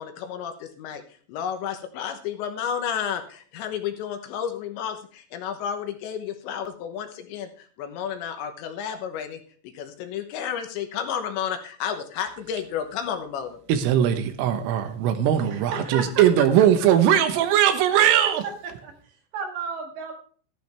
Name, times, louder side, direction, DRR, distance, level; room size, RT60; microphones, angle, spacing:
voice 1, 0.0-13.6, left 8 dB, 75° left, 3.1 m, -32 dB
voice 2, 13.7-18.4, right 10 dB, 85° right, 3.8 m, -20 dB
voice 3, 15.5-16.2 18.0-18.3 18.8-20.1, right 5 dB, 65° right, 4.0 m, -33 dB
13.5 x 11.5 x 3.4 m
omnidirectional pair, 5.7 m